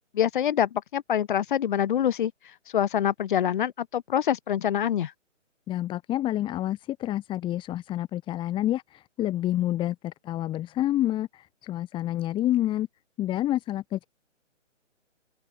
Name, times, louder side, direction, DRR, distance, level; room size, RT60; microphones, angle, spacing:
voice 1, 0.1-2.3 2.7-5.1, left 10 dB, 40° left, 3.9 m, -25 dB
voice 2, 5.7-12.9 13.2-14.1, left 13 dB, 15° left, 2.9 m, -28 dB
open air
figure-of-eight pair, 145°, 38 cm